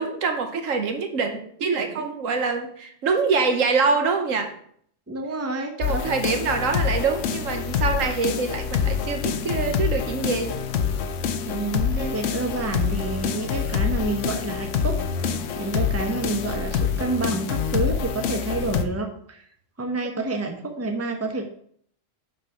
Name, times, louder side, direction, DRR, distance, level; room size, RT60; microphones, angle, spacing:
voice 1, 0.0-4.5 5.8-10.6 12.0-12.2, right 4 dB, 85° right, 5 dB, 1.4 m, -25 dB
voice 2, 5.1-6.1 11.4-19.4 19.8-21.5, right 2 dB, 15° right, 3 dB, 0.8 m, -29 dB
sound 1, 5.8-18.8, left 7 dB, 70° left, 1.0 m, -26 dB
6.5 x 5.3 x 5.6 m, 0.64 s
omnidirectional pair, 1.3 m